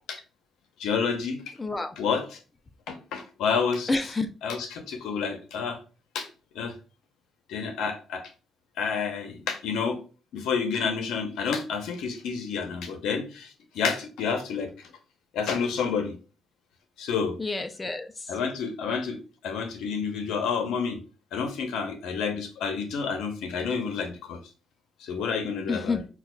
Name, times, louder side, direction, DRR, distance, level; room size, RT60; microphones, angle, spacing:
voice 1, 0.8-1.5 2.0-2.4 2.9-3.9 4.4-5.8 6.1-6.3 6.5-6.8 7.5-8.3 8.8-10.0 10.3-14.7 15.3-16.1 17.0-17.4 18.3-21.0 21.3-24.4 25.0-26.0, left 6 dB, 85° left, 7 dB, 0.7 m, -29 dB
voice 2, 1.6-2.0 3.9-4.3 17.4-18.3 25.7-26.1, left 3 dB, 20° left, 7 dB, 0.4 m, -29 dB
5.7 x 2.3 x 2.2 m, 0.34 s
cardioid pair, 90°, 0 cm